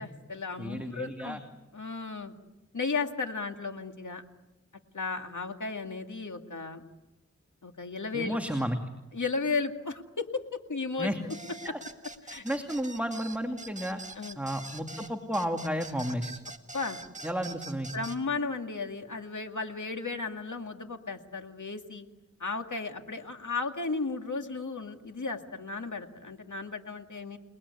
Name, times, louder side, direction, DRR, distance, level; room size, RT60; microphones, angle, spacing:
voice 1, 0.0-1.4 1.7-2.3 2.7-4.2 4.9-6.9 7.6-8.4 9.1-11.1 12.3-12.4 14.2-14.4 16.7-17.0 17.9-22.1 22.4-27.4, left 4 dB, 85° left, 5 dB, 2.2 m, -34 dB
voice 2, 0.6-1.4 8.1-8.8 11.0-11.2 11.6-11.8 12.4-14.0 14.4-16.3 17.2-17.9, equal, 5° right, 4 dB, 2.5 m, -32 dB
sound 1, 11.3-18.2, right 2 dB, 25° right, 1.9 m, -44 dB
30.0 x 20.0 x 9.7 m, 1.1 s
wide cardioid pair, 45°, 29 cm